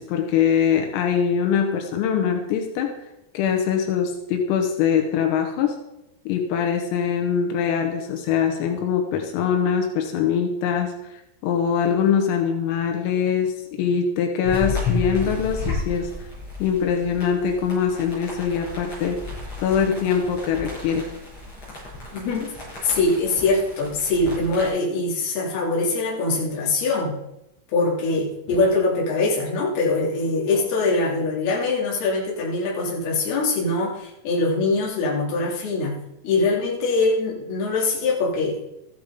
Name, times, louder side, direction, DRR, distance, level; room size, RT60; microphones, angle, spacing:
voice 1, 0.0-2.9 3.4-5.8 6.3-10.9 11.4-16.1 16.6-19.2 19.6-21.1, left 7 dB, 85° left, 3 dB, 4.0 m, -23 dB
sound 1, 14.4-24.7, left 3 dB, 30° left, 6.3 m, -33 dB
voice 2, 22.1-22.5 22.8-27.2 27.7-36.0 36.2-38.6, left 3 dB, 55° left, -3 dB, 4.3 m, -23 dB
14.0 x 12.0 x 3.7 m, 0.87 s
omnidirectional pair, 6.0 m